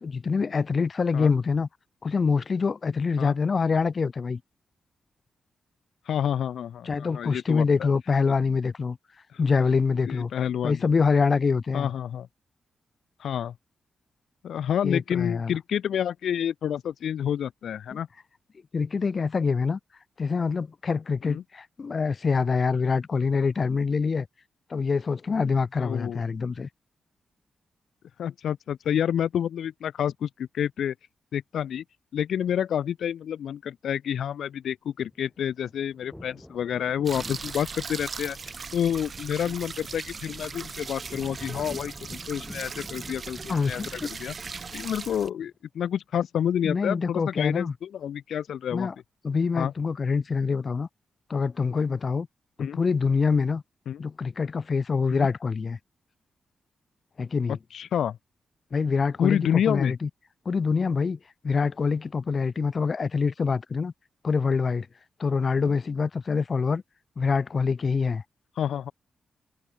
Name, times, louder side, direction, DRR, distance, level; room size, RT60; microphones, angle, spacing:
voice 1, 0.0-1.7 2.0-4.4 6.8-9.0 9.4-10.3 10.6-11.9 14.8-15.6 17.9-18.0 18.7-19.8 20.2-24.3 24.7-26.7 43.5-44.1 46.6-47.7 48.7-48.9 49.2-50.9 51.3-52.3 52.6-53.6 54.0-55.8 57.2-57.6 58.7-60.1 60.5-63.9 64.2-64.9 65.2-66.8 67.2-68.2, left 5 dB, 40° left, 1.8 m, -25 dB
voice 2, 6.1-7.9 9.3-9.4 10.1-10.8 11.7-12.3 13.2-13.5 14.4-18.1 21.2-21.4 25.8-26.2 28.2-30.9 31.3-31.8 32.1-38.4 38.7-44.3 44.7-48.9 49.6-49.7 52.6-52.8 53.9-54.0 55.1-55.3 57.7-58.2 59.2-59.9 68.6-68.9, left 9 dB, 85° left, 1.4 m, -29 dB
sound 1, 35.1-45.5, left 1 dB, 5° left, 5.7 m, -48 dB
sound 2, 37.1-45.3, right 5 dB, 40° right, 1.2 m, -39 dB
wide cardioid pair, 120°, 0 cm